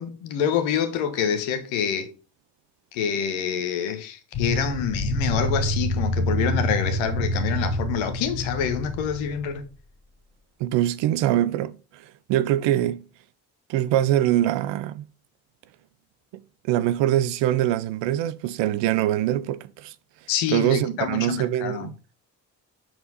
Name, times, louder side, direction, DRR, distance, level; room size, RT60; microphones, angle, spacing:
voice 1, 0.0-2.1 2.9-9.6 20.3-21.9, left 8 dB, 70° left, 1.3 m, -27 dB
sound 1, 4.3-9.5, equal, 55° left, 1.8 m, -27 dB
voice 2, 10.6-13.0 13.7-15.1 16.3-19.9 20.5-21.9, right 12 dB, 60° right, 0.7 m, -23 dB
7.7 x 4.4 x 4.0 m
figure-of-eight pair, 40°, 48 cm